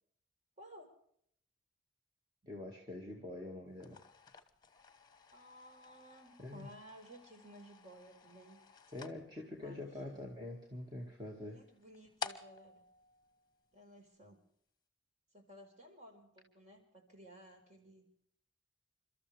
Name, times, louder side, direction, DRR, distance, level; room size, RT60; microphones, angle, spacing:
voice 1, 0.6-0.9 5.3-8.7 9.6-10.3 11.4-12.9 13.7-14.4 15.3-18.1, right 1 dB, 40° right, 3 dB, 4.9 m, -56 dB
voice 2, 2.4-4.1 6.4-6.7 8.9-11.6, left 2 dB, 25° right, 0 dB, 2.1 m, -45 dB
sound 1, 3.7-14.1, left 5 dB, 25° left, 1.2 m, -52 dB
30.0 x 13.5 x 3.4 m, 0.66 s
head